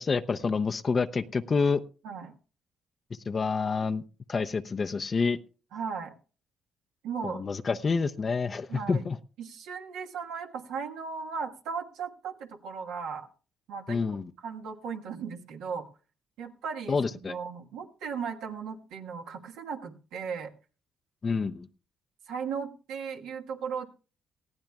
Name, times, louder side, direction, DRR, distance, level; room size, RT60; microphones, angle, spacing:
voice 1, 0.0-1.8 3.3-4.0 4.3-5.4 7.2-9.2 13.9-14.2 16.9-17.4 21.2-21.7, left 4 dB, 40° left, 9 dB, 0.6 m, -28 dB
voice 2, 5.7-6.1 7.0-7.4 8.7-9.0 9.4-13.3 13.7-14.0 14.4-15.9 16.4-20.5 22.3-23.9, right 6 dB, 80° right, 2 dB, 1.4 m, -36 dB
19.5 x 14.5 x 2.3 m, 0.38 s
supercardioid pair, 55°, 0 cm